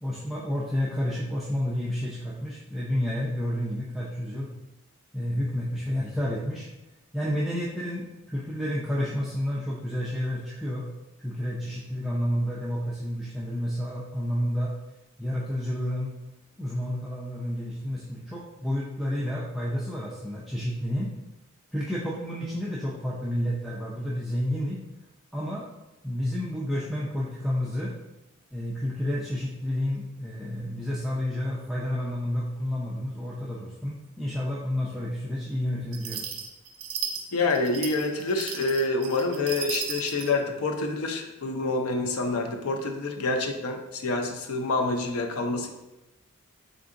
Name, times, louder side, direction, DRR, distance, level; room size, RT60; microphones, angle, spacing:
voice 1, 0.0-4.5 5.1-6.7 7.1-10.9 11.2-14.7 15.2-16.1 16.6-21.1 21.7-24.8 25.3-25.6 26.0-27.9 28.5-36.3, equal, ahead, -7 dB, 0.4 m, -30 dB
sound 1, 35.9-40.3, right 7 dB, 65° right, 0.5 m, -35 dB
voice 2, 37.3-45.7, left 3 dB, 85° left, 4 dB, 0.5 m, -27 dB
3.7 x 3.6 x 2.5 m, 0.99 s
head